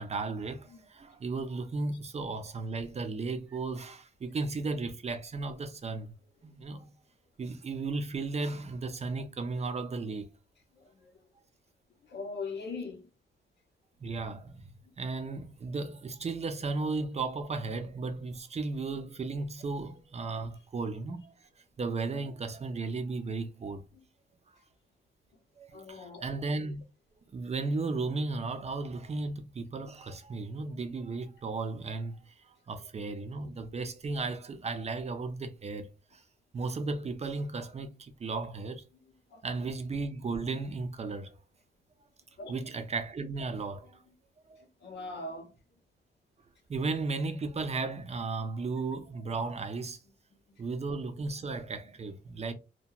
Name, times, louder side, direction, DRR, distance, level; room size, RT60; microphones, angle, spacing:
voice 1, 0.0-6.1 6.4-6.9 7.4-10.3 14.0-14.7 15.0-21.3 21.8-23.8 25.6-26.8 27.3-36.2 36.5-38.8 39.4-41.4 42.5-44.0 46.7-50.0 50.6-52.5, right 3 dB, 35° right, 0.4 m, -35 dB
voice 2, 10.7-11.2 12.0-13.1 19.0-19.1 23.9-24.0 25.7-26.2 39.3-39.4 42.4-42.5 44.8-45.5, left 3 dB, 85° left, 0.8 m, -41 dB
2.8 x 2.2 x 2.3 m
wide cardioid pair, 110°, 18 cm